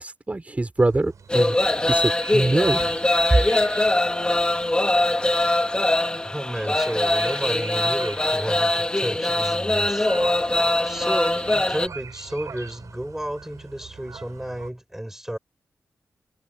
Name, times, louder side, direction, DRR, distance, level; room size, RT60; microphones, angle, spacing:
voice 1, 0.0-1.6 1.8-2.8, right 2 dB, 25° right, 5.8 m, -24 dB
sound 1, 0.8-14.7, right 6 dB, 70° right, 7.9 m, -43 dB
sound 2, 1.3-11.9, left 1 dB, 15° left, 2.2 m, -22 dB
voice 2, 6.2-10.4 10.8-15.4, right 1 dB, 5° right, 6.9 m, -32 dB
wide cardioid pair, 85°, 6 cm